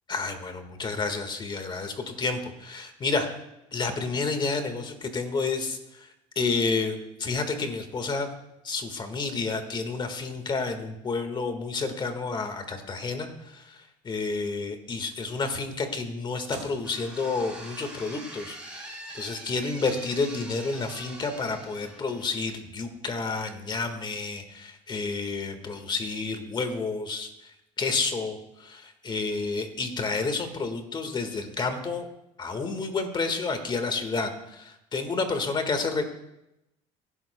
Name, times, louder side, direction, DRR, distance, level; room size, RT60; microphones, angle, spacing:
voice 1, 0.1-3.3 3.7-6.1 6.3-8.3 8.6-32.0 32.4-36.1, left 4 dB, 30° left, 7 dB, 1.7 m, -30 dB
sound 1, 16.5-22.6, right 1 dB, 5° right, 4.6 m, -43 dB
24.0 x 11.5 x 2.3 m, 0.89 s
supercardioid pair, 105°, 16 cm